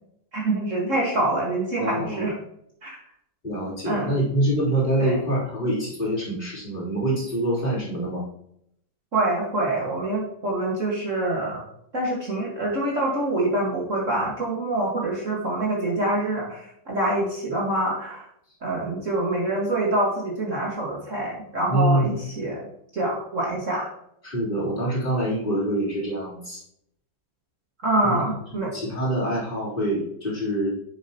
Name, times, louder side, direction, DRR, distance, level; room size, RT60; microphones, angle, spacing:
voice 1, 0.3-2.3 2.8-3.0 3.8-4.1 5.0-5.2 9.1-11.6 11.9-18.3 18.6-22.7 22.9-23.9 27.8-28.7, right 2 dB, 40° right, -4 dB, 1.9 m, -25 dB
voice 2, 1.8-2.2 3.4-8.2 21.7-22.2 24.2-26.6 28.0-28.2 28.5-30.7, right 1 dB, 25° left, -8 dB, 3.5 m, -25 dB
9.5 x 7.2 x 2.9 m, 0.73 s
omnidirectional pair, 2.1 m